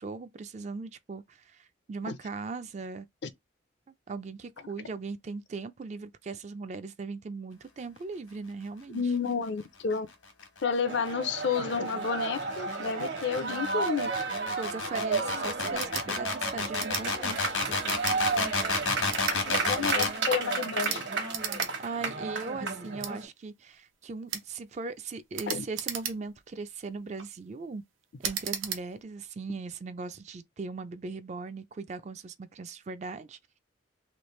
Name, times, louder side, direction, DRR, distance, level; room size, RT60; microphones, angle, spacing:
voice 1, 0.0-3.1 3.9-9.0 14.6-17.6 21.8-27.8 28.2-33.4, right 4 dB, 35° right, 0.3 m, -39 dB
voice 2, 8.9-10.1 10.6-14.1 19.0-21.0 25.5-25.6, left 6 dB, 65° left, 0.5 m, -31 dB
sound 1, 10.9-20.2, left 4 dB, 85° left, 1.2 m, -31 dB
sound 2, 10.9-23.3, right 4 dB, 65° right, 1.1 m, -33 dB
sound 3, 15.7-16.1 16.8-17.1 17.9-18.2 19.0-19.4 19.8-20.1 20.8-21.0 21.3-21.7 22.1-22.2 23.0-23.1 24.3-24.5 25.3-26.4 27.0-27.3 28.2-28.8, right 8 dB, 90° right, 0.7 m, -35 dB
3.2 x 2.4 x 3.1 m
head